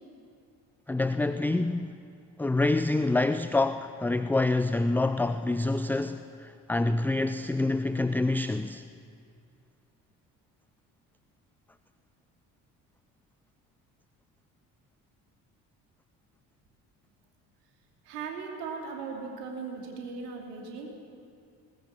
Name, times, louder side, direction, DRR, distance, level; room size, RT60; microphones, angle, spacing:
voice 1, 0.9-1.9 2.4-8.8, left 2 dB, 5° left, 0.5 m, -27 dB
voice 2, 18.0-20.9, right 5 dB, 70° right, 3.0 m, -38 dB
20.5 x 19.5 x 7.4 m
figure-of-eight pair, 50°, 48 cm